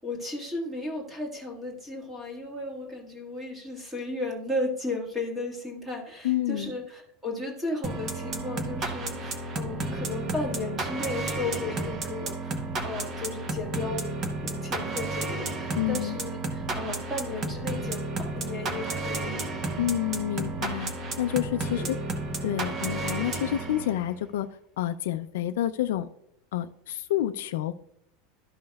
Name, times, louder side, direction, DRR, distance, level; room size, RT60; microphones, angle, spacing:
voice 1, 0.0-14.2 14.4-18.0 18.3-19.7 21.7-22.0, left 2 dB, 5° right, -1 dB, 1.5 m, -35 dB
voice 2, 6.2-6.7 15.7-16.2 19.8-20.9 21.2-22.0 22.4-24.5 24.8-26.1 26.5-27.7, left 12 dB, 80° left, 8 dB, 0.3 m, -28 dB
sound 1, 7.8-24.1, right 2 dB, 25° right, 0.8 m, -32 dB
12.5 x 5.3 x 2.3 m, 0.73 s
supercardioid pair, 175°, 0 cm